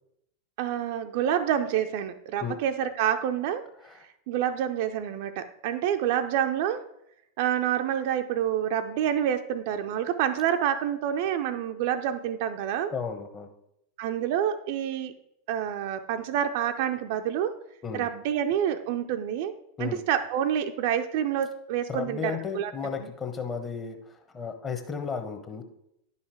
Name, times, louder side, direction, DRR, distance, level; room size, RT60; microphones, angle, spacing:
voice 1, 0.6-3.7 4.3-6.9 7.4-12.9 14.0-15.2 15.5-17.5 17.9-19.5 19.8-22.7, right 10 dB, 50° right, 8 dB, 0.5 m, -28 dB
voice 2, 12.9-13.5 17.8-18.1 19.8-20.0 21.9-25.6, left 5 dB, 20° left, 6 dB, 1.1 m, -34 dB
10.5 x 5.7 x 4.7 m, 0.79 s
figure-of-eight pair, 90°, 0 cm